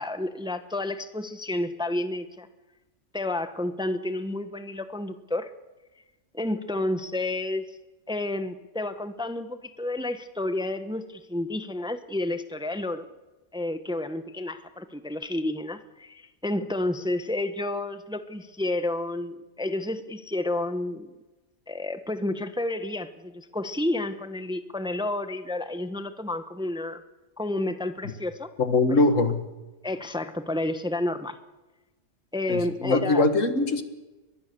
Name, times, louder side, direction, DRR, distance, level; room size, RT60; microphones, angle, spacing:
voice 1, 0.0-2.5 3.1-5.5 6.3-7.7 8.1-13.1 13.5-21.2 21.7-27.0 27.4-28.5 29.8-31.4 32.3-33.3, left 2 dB, 5° right, 0.9 m, -30 dB
voice 2, 28.6-29.4 32.5-33.8, left 2 dB, 80° left, 2.1 m, -22 dB
23.5 x 21.0 x 6.9 m
omnidirectional pair, 1.3 m